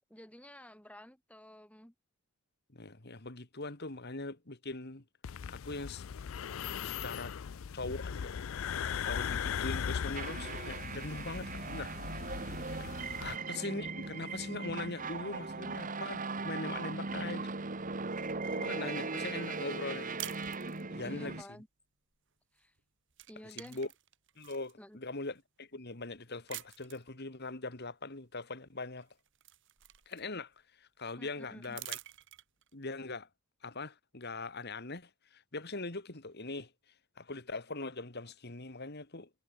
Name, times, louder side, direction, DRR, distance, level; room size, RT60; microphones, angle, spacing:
voice 1, 0.0-1.9 12.9-13.3 18.4-19.1 21.0-21.7 22.5-22.7 23.3-23.8 24.8-25.0 31.2-31.8, equal, 5° left, 4.1 m, -52 dB
voice 2, 2.7-5.0 5.5-6.1 6.8-7.4 7.7-8.4 9.0-12.0 12.7-12.9 13.2-17.5 18.5-20.3 20.9-21.4 23.4-23.9 24.4-29.1 30.1-30.5 30.8-32.0 32.7-33.3 33.6-36.7 37.2-39.3, left 3 dB, 45° left, 2.1 m, -41 dB
sound 1, 5.2-13.4, left 7 dB, 60° left, 0.4 m, -38 dB
sound 2, 10.1-21.4, right 3 dB, 35° right, 1.4 m, -39 dB
sound 3, 20.2-21.2 22.6-22.8 23.1-24.7 25.4-25.5 26.5-27.1 28.5-28.6 29.0-30.6 31.6-32.7, right 14 dB, 55° right, 3.1 m, -47 dB
head